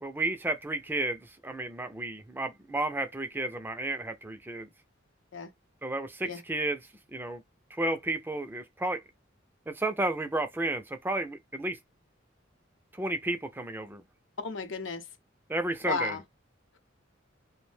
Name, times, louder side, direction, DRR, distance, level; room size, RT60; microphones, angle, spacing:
voice 1, 0.0-4.7 5.8-6.8 7.1-7.4 7.7-9.0 9.7-11.8 12.9-14.0 15.5-16.2, right 2 dB, 10° right, 0.4 m, -32 dB
voice 2, 14.4-15.0 15.8-16.2, left 4 dB, 70° left, 0.5 m, -33 dB
2.5 x 2.1 x 3.1 m
head